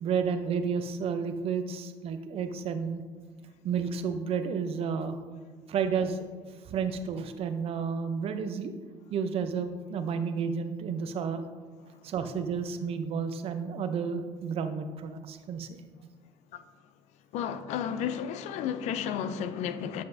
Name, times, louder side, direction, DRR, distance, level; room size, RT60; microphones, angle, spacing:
voice 1, 0.0-3.0 3.6-5.2 5.7-8.7 9.1-11.5 12.0-15.8, right 6 dB, 55° right, 0.5 m, -31 dB
voice 2, 17.3-20.0, left 8 dB, 70° left, 0.4 m, -32 dB
7.5 x 5.5 x 2.6 m
cardioid pair, 110°, 12 cm